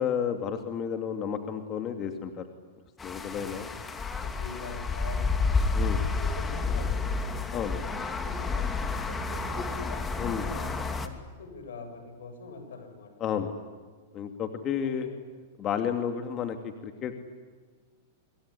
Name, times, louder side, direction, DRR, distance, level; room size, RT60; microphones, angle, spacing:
voice 1, 0.0-2.4 3.0-3.7 5.7-6.1 7.5-7.8 10.2-10.5 13.2-13.5 14.1-15.1 15.6-17.1, left 8 dB, 35° left, 6 dB, 2.6 m, -31 dB
sound 1, 3.0-11.1, left 4 dB, 15° left, 2.9 m, -30 dB
voice 2, 3.3-10.0 10.4-13.1 14.5-15.2 15.6-15.7, left 4 dB, 80° left, 6 dB, 7.5 m, -45 dB
26.5 x 22.0 x 9.9 m, 1.5 s
hypercardioid pair, 120°, 0 cm